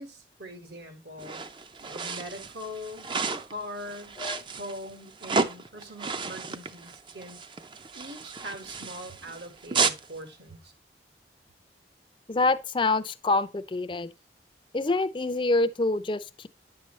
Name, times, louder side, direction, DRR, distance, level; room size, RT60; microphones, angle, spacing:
voice 1, 0.0-1.4 1.8-4.2 4.6-7.4 7.9-10.7, equal, 75° right, 1.9 m, -42 dB
sound 1, 1.2-10.1, right 4 dB, 25° right, 0.4 m, -32 dB
voice 2, 12.3-14.1 14.7-16.5, left 3 dB, 30° left, 0.4 m, -26 dB
9.9 x 6.7 x 3.2 m
head